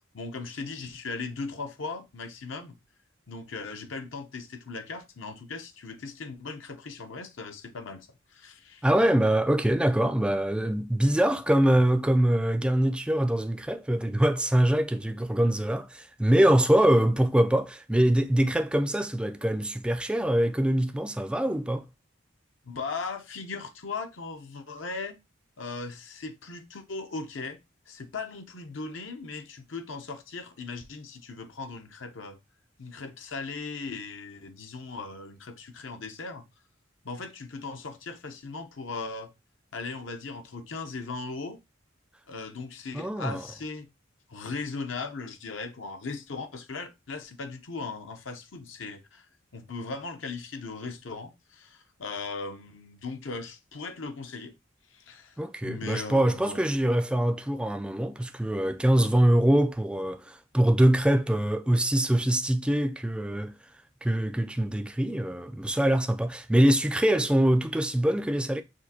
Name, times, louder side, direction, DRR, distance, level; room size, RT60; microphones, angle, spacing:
voice 1, 0.1-2.8 3.3-8.8 22.6-25.2 25.6-27.6 27.9-32.4 32.8-36.5 37.0-39.3 39.7-41.6 42.3-43.9 44.3-49.3 49.5-54.5 54.9-55.4 55.6-56.6, left 4 dB, 80° left, 0.7 m, -38 dB
voice 2, 8.8-21.8 42.9-43.4 55.4-63.5 64.0-68.6, right 1 dB, 5° right, 0.3 m, -24 dB
6.2 x 2.6 x 2.8 m
head